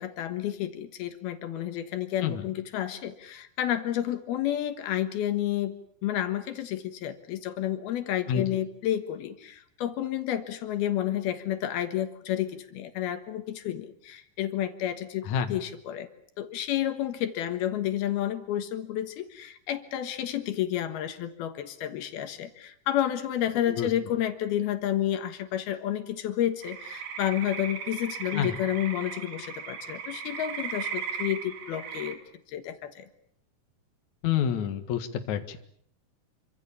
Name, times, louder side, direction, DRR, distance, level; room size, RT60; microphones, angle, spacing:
voice 1, 0.0-5.7 6.0-16.1 16.4-32.2 32.5-33.1, left 11 dB, 80° left, 8 dB, 3.3 m, -30 dB
voice 2, 8.3-8.6 15.2-15.6 23.7-23.9 28.3-28.5 34.2-35.6, left 8 dB, 55° left, 7 dB, 2.7 m, -28 dB
sound 1, 26.6-32.1, right 6 dB, 75° right, 4.5 m, -37 dB
27.0 x 25.5 x 7.1 m, 0.64 s
omnidirectional pair, 4.5 m